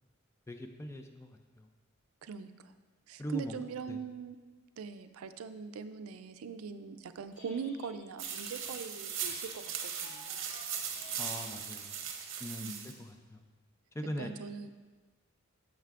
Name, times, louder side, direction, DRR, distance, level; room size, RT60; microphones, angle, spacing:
voice 1, 0.5-1.7 3.2-4.0 11.2-12.0 12.4-13.4 13.9-14.3, equal, 15° left, 5 dB, 0.3 m, -41 dB
voice 2, 2.2-2.7 3.1-4.4 4.8-10.4 12.6-12.9 14.2-14.7, right 6 dB, 85° right, 11 dB, 0.4 m, -42 dB
Telephone, 7.2-7.9 8.2-11.9, left 2 dB, 90° left, 1.9 m, -54 dB
sound 1, 8.2-12.9, right 7 dB, 65° right, 0.7 m, -39 dB
9.0 x 6.5 x 2.4 m, 1.3 s
head